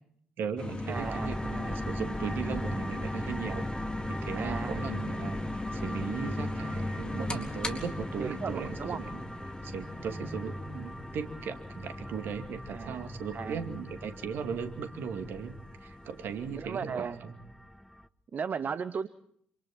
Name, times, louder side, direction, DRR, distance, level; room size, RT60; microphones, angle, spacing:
voice 1, 0.4-3.7 4.1-5.4 5.7-9.2 9.6-15.5 15.8-17.3, right 6 dB, 60° right, 7 dB, 2.4 m, -37 dB
sound 1, 0.6-16.5, left 2 dB, 25° left, 3.9 m, -39 dB
sound 2, 0.9-18.1, equal, ahead, 1.1 m, -40 dB
voice 2, 0.9-1.4 4.4-4.8 8.2-9.0 12.7-13.0 13.3-13.6 16.6-17.2 18.3-19.1, right 6 dB, 45° right, 13 dB, 1.1 m, -36 dB
27.0 x 26.5 x 4.4 m, 0.65 s
figure-of-eight pair, 40°, 4 cm